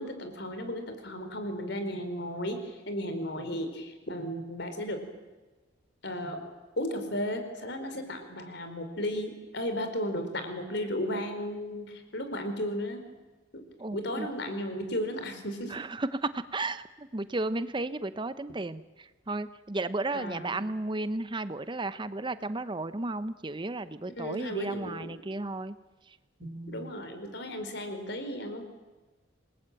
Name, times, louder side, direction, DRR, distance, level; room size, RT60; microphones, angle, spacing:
voice 1, 0.0-5.0 6.0-6.4 6.8-13.0 13.5-13.6 13.9-15.7 20.1-20.6 24.2-25.1 26.7-28.7, equal, 60° left, 7 dB, 4.6 m, -34 dB
voice 2, 13.8-14.3 15.7-25.8 26.4-26.9, right 2 dB, 25° right, 13 dB, 0.7 m, -34 dB
27.0 x 20.5 x 9.0 m, 1.2 s
head